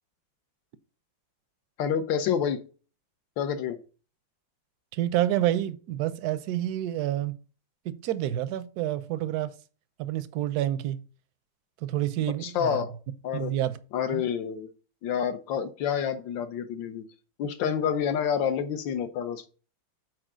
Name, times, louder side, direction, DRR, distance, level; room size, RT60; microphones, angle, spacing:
voice 1, 1.8-2.6 3.4-3.8 12.4-12.9 13.2-13.5 13.9-14.7 15.0-17.1 17.4-19.5, left 8 dB, 75° left, 1.5 m, -28 dB
voice 2, 4.9-7.4 7.8-9.6 10.0-11.1 11.8-12.8 13.3-13.8 14.1-14.2, right 13 dB, 70° right, 0.9 m, -28 dB
6.3 x 4.6 x 6.0 m
omnidirectional pair, 2.1 m